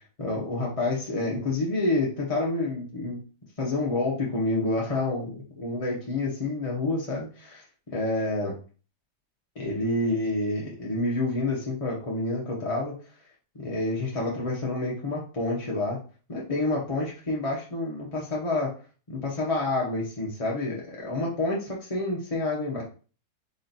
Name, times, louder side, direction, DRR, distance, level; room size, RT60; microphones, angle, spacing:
voice 1, 0.2-3.2 3.6-7.6 7.9-8.5 9.5-12.9 13.5-16.0 16.3-18.7 19.1-22.8, left 2 dB, 30° left, -4 dB, 0.8 m, -28 dB
4.2 x 2.8 x 4.0 m, 0.37 s
omnidirectional pair, 1.8 m